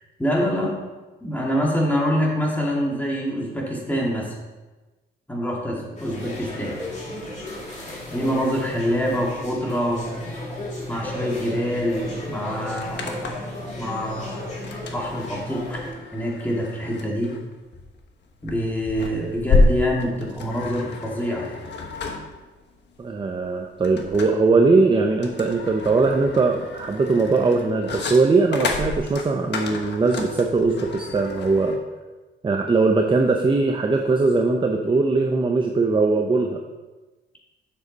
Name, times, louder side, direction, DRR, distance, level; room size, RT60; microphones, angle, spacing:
voice 1, 0.2-0.8 1.2-4.4 5.3-6.8 8.1-10.2 10.9-14.4 14.9-15.8 16.1-17.4 18.4-21.6, equal, 10° left, -3 dB, 2.0 m, -25 dB
sound 1, 6.0-15.9, left 1 dB, 35° left, 2.5 m, -34 dB
sound 2, 11.9-12.0 12.3-13.6 14.6-31.8, left 3 dB, 60° left, 1.2 m, -29 dB
voice 2, 23.0-31.8 32.4-36.6, right 3 dB, 25° right, 3 dB, 0.6 m, -20 dB
7.5 x 6.4 x 4.0 m, 1.2 s
cardioid pair, 100°, 20 cm